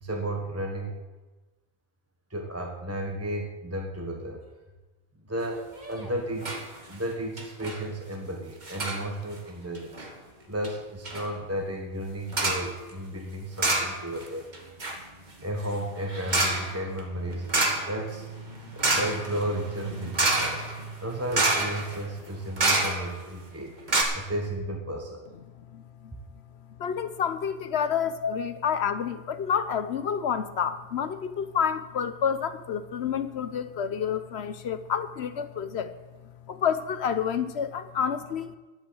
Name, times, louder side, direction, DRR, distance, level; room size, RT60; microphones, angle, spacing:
voice 1, 0.0-0.9 2.3-4.4 5.3-6.5 6.9-10.1 10.5-14.5 15.4-17.5 17.9-18.3 18.7-20.6 21.0-23.8 24.1-25.2 28.2-28.3, right 1 dB, 10° right, 2 dB, 1.2 m, -33 dB
sound 1, 5.8-6.1 6.4-6.6 6.9-7.0 7.4-7.8 8.6-9.0 9.7-10.1 10.6-10.7 11.0-11.3 12.3-12.7 13.6-14.3 14.5-23.3 23.6-23.7 23.9-24.0, right 2 dB, 35° right, 1.9 m, -28 dB
voice 2, 26.8-35.9 36.5-38.5, left 7 dB, 60° left, 12 dB, 0.9 m, -29 dB
11.0 x 8.7 x 8.6 m, 1.2 s
omnidirectional pair, 1.3 m